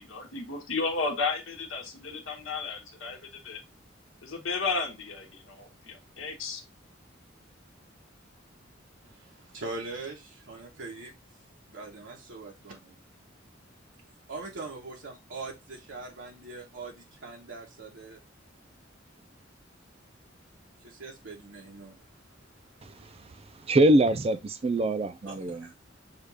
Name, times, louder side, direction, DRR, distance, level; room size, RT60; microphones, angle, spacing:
voice 1, 0.0-3.2 3.4-3.6 4.2-6.6, left 4 dB, 85° left, 1.1 m, -33 dB
voice 2, 9.0-11.1 11.7-12.9 14.3-18.2 20.8-22.0 25.3-25.7, right 3 dB, 80° right, 1.0 m, -42 dB
voice 3, 23.7-25.7, right 1 dB, 30° right, 0.4 m, -23 dB
6.5 x 2.4 x 3.3 m
head